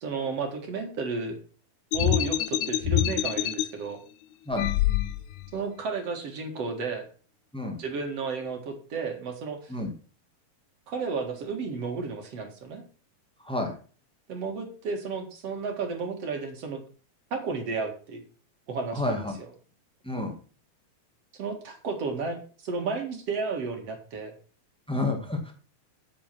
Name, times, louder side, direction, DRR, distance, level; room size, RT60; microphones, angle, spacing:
voice 1, 0.0-1.4 1.9-4.0 5.5-7.1 7.8-9.7 10.9-12.8 14.3-16.8 17.3-18.2 18.7-19.2 21.3-24.3, right 4 dB, 50° right, 4 dB, 2.6 m, -32 dB
sound 1, 1.9-3.6 4.5-5.5, left 13 dB, 85° left, 1.6 m, -26 dB
voice 2, 18.9-19.4 20.0-20.3 24.9-25.5, left 2 dB, 5° left, 1 dB, 0.7 m, -29 dB
8.7 x 8.5 x 6.1 m, 0.39 s
omnidirectional pair, 4.3 m